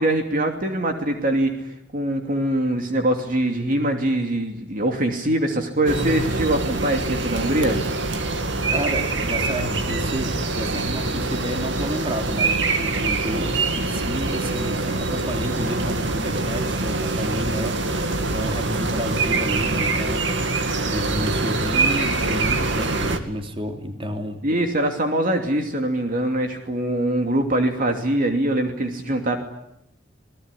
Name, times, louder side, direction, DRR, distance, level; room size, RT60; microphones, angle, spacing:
voice 1, 0.0-7.8 24.4-29.4, right 1 dB, 50° right, 4 dB, 2.8 m, -23 dB
sound 1, 5.9-23.2, right 3 dB, 75° right, 2.5 m, -24 dB
voice 2, 8.7-24.4, equal, 30° right, 4 dB, 3.2 m, -30 dB
28.5 x 20.0 x 10.0 m, 0.84 s
head